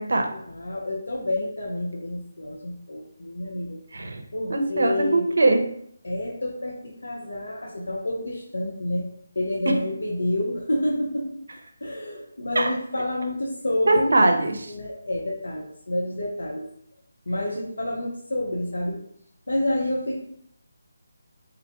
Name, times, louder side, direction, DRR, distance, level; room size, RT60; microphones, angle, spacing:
voice 1, 0.3-3.8 4.3-5.2 6.0-9.1 9.4-11.4 11.8-14.2 14.6-16.7 17.3-19.0 19.5-20.2, left 1 dB, 85° left, -2 dB, 0.6 m, -29 dB
voice 2, 4.5-5.6 12.5-12.7 13.9-14.7, right 2 dB, 75° right, 5 dB, 0.5 m, -21 dB
3.8 x 2.2 x 2.8 m, 0.68 s
figure-of-eight pair, 170°, 0 cm